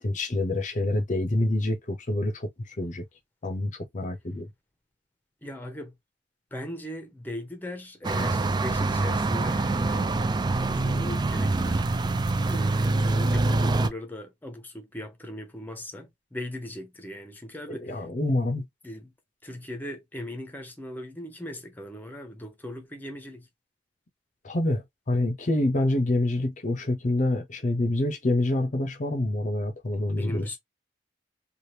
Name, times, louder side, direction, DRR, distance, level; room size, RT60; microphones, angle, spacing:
voice 1, 0.0-3.0 3.4-4.5 17.7-18.6 24.4-30.6, left 1 dB, 45° left, 0.7 m, -27 dB
voice 2, 5.4-5.9 6.5-10.2 10.5-12.1 12.4-18.0 18.8-19.1 19.4-23.5 30.2-30.6, left 1 dB, 10° left, 0.7 m, -39 dB
sound 1, 8.0-13.9, right 2 dB, 25° right, 0.4 m, -25 dB
3.3 x 2.4 x 2.7 m
head